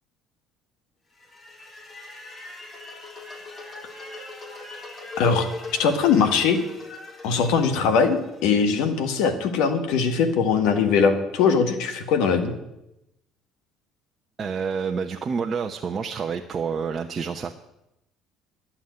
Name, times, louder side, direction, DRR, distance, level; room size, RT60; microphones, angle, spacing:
sound 1, 1.1-9.2, left 3 dB, 40° left, 3.9 m, -40 dB
voice 1, 5.2-5.5 5.8-6.6 7.2-12.5, left 5 dB, 75° left, 8 dB, 1.6 m, -21 dB
voice 2, 14.4-17.5, right 6 dB, 40° right, 3 dB, 0.9 m, -28 dB
11.5 x 7.3 x 9.3 m, 0.87 s
hypercardioid pair, 65°, 0 cm